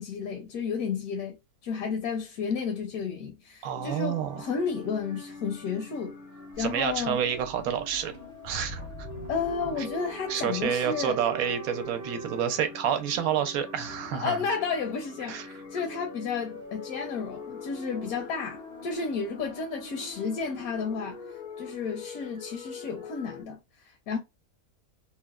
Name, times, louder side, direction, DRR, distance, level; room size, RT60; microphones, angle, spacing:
voice 1, 0.0-1.4 1.6-6.2 6.6-7.2 9.3-11.2 14.1-21.2 21.6-24.2, left 5 dB, 80° left, 1.1 m, -32 dB
voice 2, 3.6-4.5 6.6-8.1 8.4-8.8 9.8-9.9 10.3-14.4 15.3-15.5, right 9 dB, 75° right, 1.0 m, -29 dB
sound 1, 3.7-21.0, right 1 dB, 20° right, 0.4 m, -45 dB
sound 2, 4.5-23.4, left 5 dB, 55° left, 0.5 m, -45 dB
Sink (filling or washing), 6.5-10.3, right 1 dB, 50° right, 0.8 m, -44 dB
3.1 x 2.1 x 2.3 m
omnidirectional pair, 1.5 m